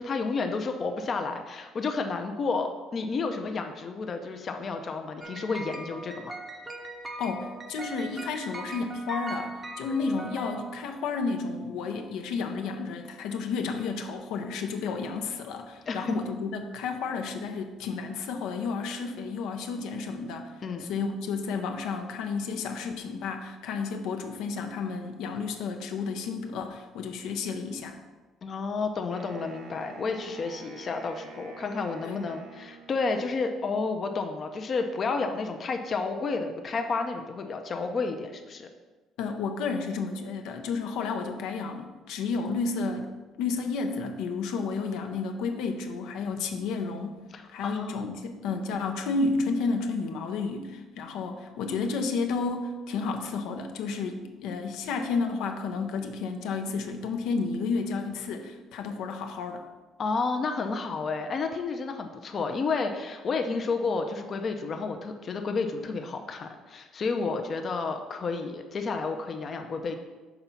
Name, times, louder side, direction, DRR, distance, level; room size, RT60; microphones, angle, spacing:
voice 1, 0.0-6.3 15.9-16.2 20.6-20.8 28.4-38.7 47.3-48.1 60.0-70.0, left 4 dB, 35° left, 5 dB, 0.5 m, -31 dB
sound 1, 5.2-11.2, right 2 dB, 15° right, 0.6 m, -40 dB
voice 2, 7.2-20.5 20.8-28.0 32.0-32.2 39.2-43.1 43.4-47.2 47.5-59.6, left 4 dB, 80° left, 5 dB, 0.7 m, -31 dB
Wind instrument woodwind instrument, 29.1-33.4, right 4 dB, 75° right, 1.0 m, -47 dB
5.8 x 3.9 x 5.7 m, 1.2 s
cardioid pair, 145°, 0 cm